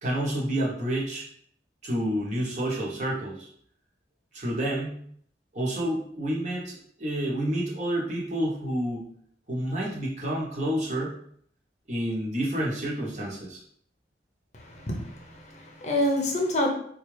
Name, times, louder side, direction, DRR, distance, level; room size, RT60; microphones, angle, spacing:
voice 1, 0.0-1.3 1.8-3.5 4.3-5.0 5.5-9.1 9.5-11.1 11.9-13.6, right 1 dB, 40° right, -4 dB, 1.0 m, -29 dB
voice 2, 14.5-16.7, left 1 dB, 40° left, 1 dB, 0.6 m, -28 dB
4.2 x 2.4 x 3.2 m, 0.63 s
head